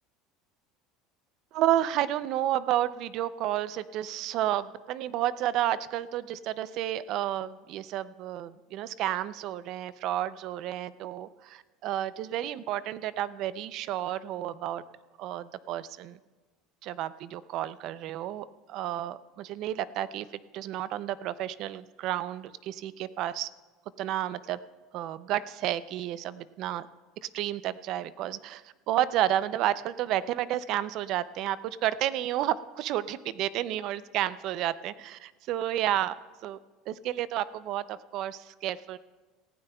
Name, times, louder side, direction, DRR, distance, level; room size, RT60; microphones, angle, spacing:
voice 1, 1.5-14.8 15.2-16.2 16.8-20.3 20.5-23.5 24.0-24.6 24.9-26.9 27.2-36.1 36.4-36.6 36.9-39.0, right 12 dB, 50° right, 16 dB, 0.4 m, -31 dB
19.0 x 15.5 x 2.3 m, 1.3 s
cardioid pair, 155°, 0 cm